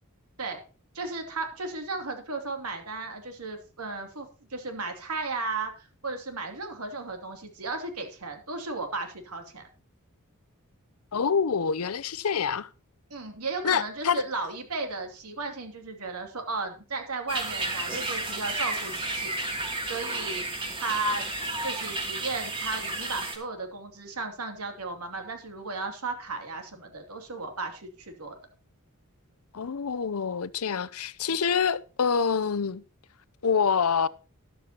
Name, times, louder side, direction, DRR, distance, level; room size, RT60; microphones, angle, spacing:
voice 1, 0.9-9.6 13.1-21.3 21.6-28.4, right 3 dB, 85° right, 2.8 m, -35 dB
voice 2, 11.1-12.7 13.6-14.2 29.5-32.8 33.4-34.1, left 6 dB, 75° left, 0.6 m, -26 dB
sound 1, 17.3-23.4, right 2 dB, 25° right, 2.8 m, -32 dB
13.0 x 12.5 x 2.9 m
head